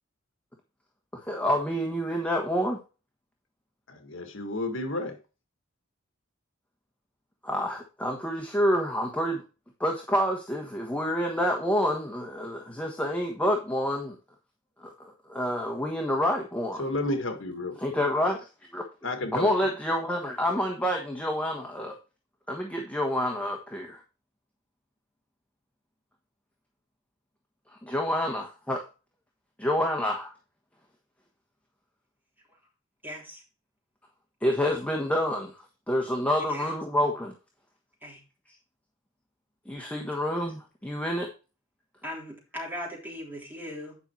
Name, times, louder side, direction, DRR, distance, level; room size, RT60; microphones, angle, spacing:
voice 1, 1.1-2.8 7.4-9.4 9.8-14.2 14.8-16.8 17.8-18.5 18.7-18.8 19.3-22.0 22.5-24.0 27.7-28.8 29.6-30.3 34.4-37.3 38.5-38.6 39.6-41.3, equal, 5° left, 1.2 m, -28 dB
voice 2, 3.9-5.2 16.8-18.0 19.0-19.5, left 2 dB, 65° left, 1.7 m, -31 dB
voice 3, 33.0-33.4 36.5-36.7 38.0-38.2 42.0-44.0, equal, 10° right, 3.4 m, -38 dB
9.9 x 5.6 x 4.5 m
head